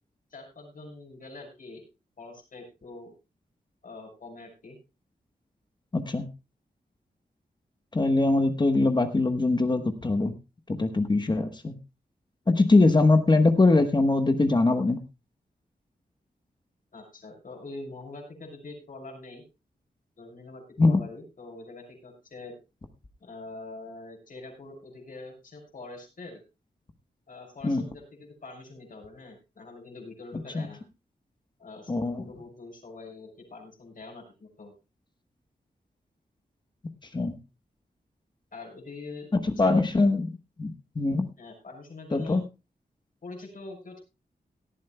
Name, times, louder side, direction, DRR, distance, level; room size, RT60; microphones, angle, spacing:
voice 1, 0.3-1.8 2.2-3.1 3.8-4.8 16.9-19.4 20.2-22.6 23.2-26.4 27.3-30.8 31.6-34.7 38.5-39.7 41.4-42.4 43.2-44.0, left 3 dB, 55° left, 2 dB, 6.6 m, -44 dB
voice 2, 5.9-6.3 7.9-10.3 10.7-11.8 12.5-15.0 20.8-21.0 27.6-27.8 30.5-30.7 31.9-32.2 37.1-37.3 39.3-40.3 40.6-41.3 42.1-42.4, left 2 dB, 25° left, 7 dB, 1.1 m, -22 dB
18.0 x 13.5 x 2.2 m, 0.28 s
wide cardioid pair, 150°, 17 cm